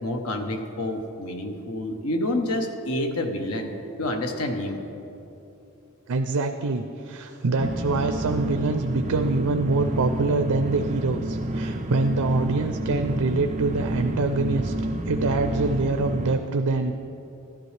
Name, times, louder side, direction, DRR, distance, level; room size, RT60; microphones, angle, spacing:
voice 1, 0.0-3.7 4.0-4.8, left 1 dB, 90° left, 5 dB, 1.0 m, -28 dB
voice 2, 6.1-14.7 15.1-16.9, right 3 dB, 90° right, 7 dB, 0.5 m, -25 dB
sound 1, 7.6-16.3, right 1 dB, 35° right, 0.5 m, -29 dB
12.5 x 12.0 x 3.3 m, 2.8 s
head